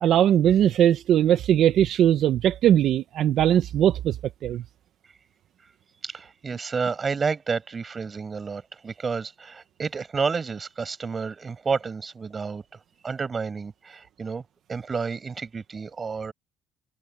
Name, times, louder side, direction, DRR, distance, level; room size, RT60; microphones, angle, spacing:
voice 1, 0.0-4.2 4.4-4.6, right 10 dB, 60° right, 0.9 m, -20 dB
voice 2, 6.0-12.6 13.0-14.4 14.7-16.3, right 5 dB, 30° right, 7.8 m, -30 dB
cardioid pair, 110°, 0 cm